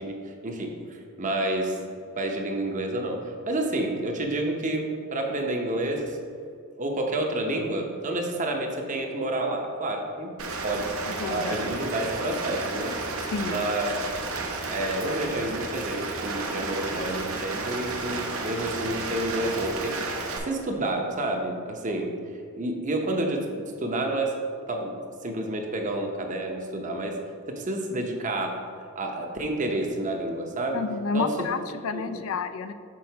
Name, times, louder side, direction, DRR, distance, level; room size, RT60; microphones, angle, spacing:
voice 1, 0.0-1.8 2.2-6.2 6.8-10.4 10.6-10.9 11.3-13.0 13.4-13.9 14.7-20.0 20.4-22.1 22.6-24.4 24.7-27.2 27.5-28.6 29.0-30.8 31.1-31.3 31.9-32.2, right 1 dB, 35° right, 2 dB, 0.7 m, -29 dB
Rain, 10.4-20.4, right 3 dB, 75° right, 0.9 m, -32 dB
voice 2, 11.1-11.6 13.2-13.6 30.7-32.7, left 5 dB, 65° left, 10 dB, 0.4 m, -30 dB
6.2 x 3.8 x 5.7 m, 2.3 s
head